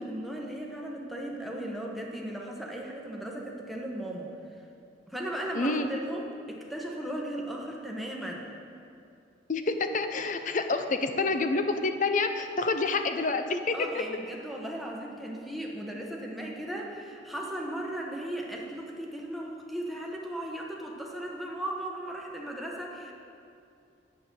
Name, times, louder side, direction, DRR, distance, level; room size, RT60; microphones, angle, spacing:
voice 1, 0.0-4.3 5.1-8.5 13.7-23.1, right 1 dB, ahead, -2 dB, 1.1 m, -37 dB
voice 2, 5.6-5.9 9.5-14.0, left 3 dB, 45° left, 7 dB, 0.6 m, -28 dB
8.7 x 7.6 x 6.9 m, 2.6 s
head